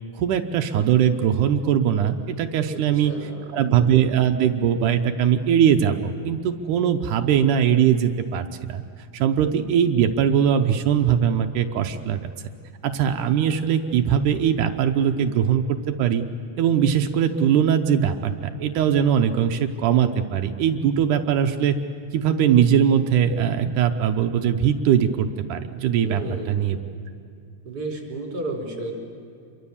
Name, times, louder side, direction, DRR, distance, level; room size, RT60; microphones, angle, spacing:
voice 1, 0.2-3.1 3.5-8.8 9.1-12.2 12.8-16.2 16.6-18.3 18.6-21.8 22.1-26.2 26.5-26.8, right 8 dB, 90° right, 5 dB, 2.4 m, -21 dB
voice 2, 2.7-3.5 26.0-26.8 27.6-28.9, right 2 dB, 35° right, 1 dB, 4.4 m, -33 dB
27.0 x 23.5 x 7.2 m, 2.3 s
omnidirectional pair, 3.5 m